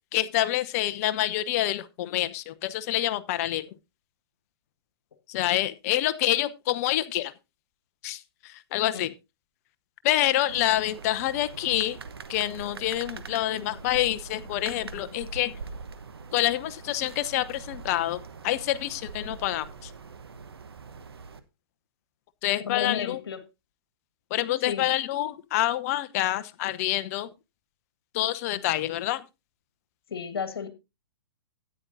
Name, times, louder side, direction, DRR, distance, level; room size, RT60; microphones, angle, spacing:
voice 1, 0.1-3.7 5.3-7.3 8.0-9.1 10.0-12.0 12.3-15.5 16.3-19.9 22.4-23.2 24.3-27.3 28.1-29.2, left 14 dB, 40° left, 0.7 m, -27 dB
sound 1, 10.5-21.4, right 4 dB, 70° right, 1.1 m, -43 dB
voice 2, 22.7-23.4 24.6-24.9 30.1-30.7, left 7 dB, 65° left, 1.7 m, -32 dB
13.0 x 9.5 x 2.6 m
figure-of-eight pair, 120°, 13 cm